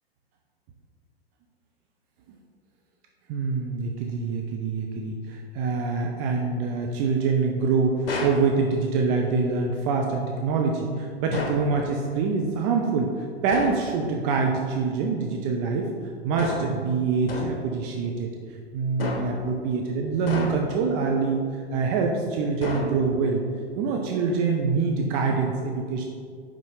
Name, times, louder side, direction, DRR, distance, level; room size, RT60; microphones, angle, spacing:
voice 1, 3.3-15.9 16.2-18.3 18.7-21.4 21.7-23.4 23.8-26.0, right 4 dB, 25° right, 1 dB, 0.4 m, -25 dB
sound 1, 8.1-8.5 11.3-11.7 13.5-13.9 16.4-16.8 17.3-17.7 19.0-19.5 20.3-20.9 22.6-23.3, left 2 dB, 65° left, 1.1 m, -31 dB
5.4 x 5.2 x 4.8 m, 2.1 s
figure-of-eight pair, 100°, 31 cm